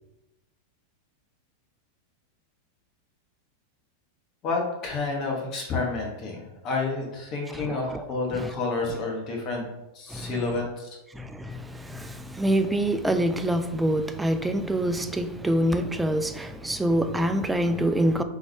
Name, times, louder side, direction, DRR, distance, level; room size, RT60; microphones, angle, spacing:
voice 1, 4.4-9.6 9.9-11.0, left 3 dB, 35° left, 1.1 m, -29 dB
voice 2, 7.5-8.0 8.3-8.5 10.1-10.5 11.1-18.2, right 1 dB, 5° right, 0.3 m, -26 dB
3.8 x 3.1 x 3.3 m
figure-of-eight pair, 90°, 0 cm